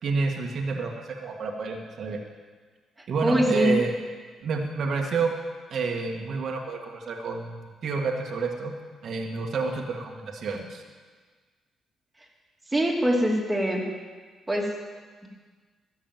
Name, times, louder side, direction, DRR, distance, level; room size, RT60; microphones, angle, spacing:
voice 1, 0.0-2.2 3.1-3.9 4.4-5.3 5.7-8.7 9.0-10.8, right 4 dB, 60° right, 1 dB, 1.6 m, -29 dB
voice 2, 3.2-3.7 12.7-13.8 14.5-14.7, equal, 10° right, -1 dB, 2.7 m, -23 dB
13.5 x 6.6 x 9.0 m, 1.5 s
cardioid pair, 90°, 0 cm